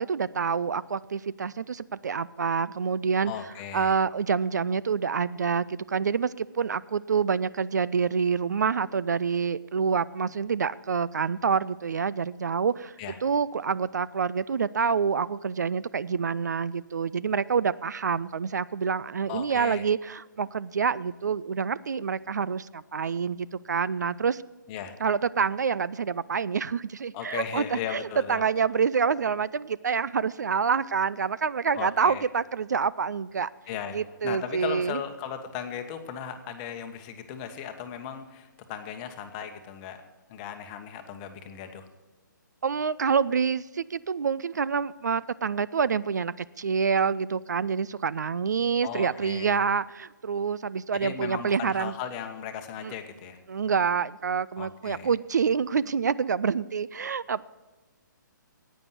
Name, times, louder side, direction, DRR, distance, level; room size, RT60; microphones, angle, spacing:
voice 1, 0.0-3.3 3.7-13.0 13.2-24.4 25.0-33.5 33.9-35.0 42.6-51.9 52.8-52.9 53.5-57.4, right 6 dB, 60° right, 18 dB, 0.3 m, -27 dB
voice 2, 3.2-4.0 13.0-13.2 19.3-19.9 24.7-25.0 27.1-28.5 31.7-32.2 33.7-40.0 40.3-41.9 48.8-49.6 50.9-53.4 54.6-55.1, left 8 dB, 25° left, 7 dB, 1.1 m, -37 dB
11.0 x 9.1 x 6.6 m, 1.2 s
figure-of-eight pair, 135°, 11 cm